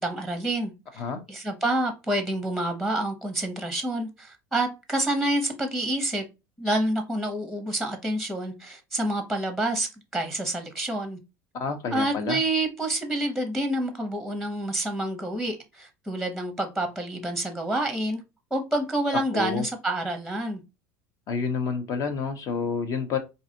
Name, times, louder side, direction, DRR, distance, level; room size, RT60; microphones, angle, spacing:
voice 1, 0.0-1.0 1.3-6.2 6.6-11.2 11.9-18.2 18.5-20.6, right 1 dB, ahead, 0.8 m, -28 dB
voice 2, 11.5-12.4 19.3-19.6 21.3-23.2, left 5 dB, 50° left, 0.9 m, -29 dB
3.9 x 2.6 x 2.8 m
supercardioid pair, 105°, 8 cm